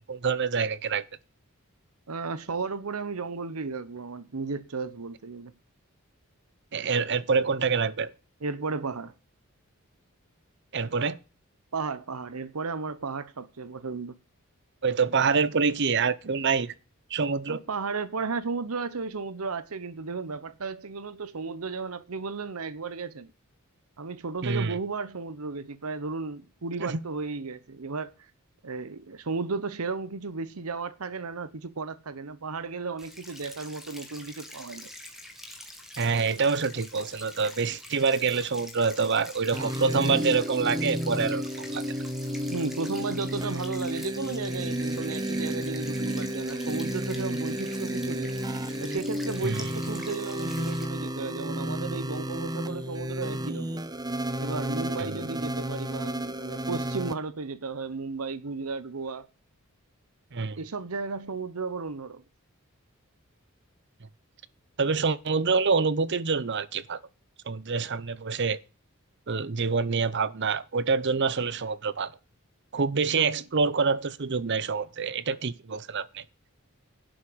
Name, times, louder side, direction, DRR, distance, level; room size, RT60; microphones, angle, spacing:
voice 1, 0.1-1.0 6.7-8.1 10.7-11.2 14.8-16.7 17.1-17.6 24.4-24.8 26.8-27.0 36.0-41.4 41.7-41.8 49.4-49.7 55.0-55.2 60.3-60.6 64.8-67.0 67.5-68.6 69.3-72.1 72.7-76.2, right 5 dB, 55° right, 0.7 m, -26 dB
voice 2, 2.1-5.5 8.4-9.1 11.7-14.2 17.5-23.3 24.0-28.1 28.6-34.9 42.5-48.3 48.8-53.8 54.4-59.3 60.6-62.2 73.2-73.4, right 4 dB, 80° right, 0.9 m, -34 dB
sound 1, 33.0-50.8, left 1 dB, ahead, 2.0 m, -45 dB
sound 2, 39.5-57.1, right 1 dB, 20° right, 0.8 m, -32 dB
11.5 x 6.3 x 7.8 m
head